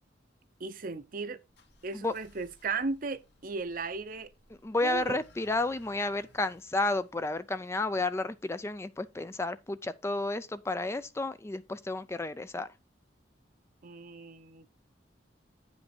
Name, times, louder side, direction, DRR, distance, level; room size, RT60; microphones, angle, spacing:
voice 1, 0.6-1.4 1.8-4.3 4.8-5.2 13.8-14.7, right 4 dB, 50° right, 0.7 m, -36 dB
sound 1, 1.5-8.4, left 2 dB, 70° left, 1.4 m, -62 dB
voice 2, 4.6-12.7, left 2 dB, 15° left, 0.3 m, -32 dB
9.4 x 5.3 x 4.3 m
head